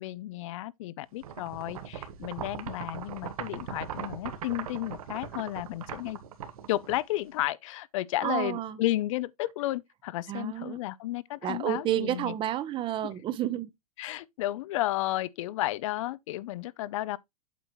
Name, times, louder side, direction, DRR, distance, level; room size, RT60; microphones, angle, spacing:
voice 1, 0.0-6.2 6.7-12.3 13.0-13.1 14.0-17.2, left 15 dB, 60° left, 0.5 m, -32 dB
sound 1, 1.2-7.3, right 8 dB, 75° right, 1.5 m, -40 dB
voice 2, 8.2-8.8 10.3-10.8 11.4-13.7, right 12 dB, 25° right, 0.7 m, -30 dB
8.3 x 5.8 x 3.0 m
hypercardioid pair, 135°, 19 cm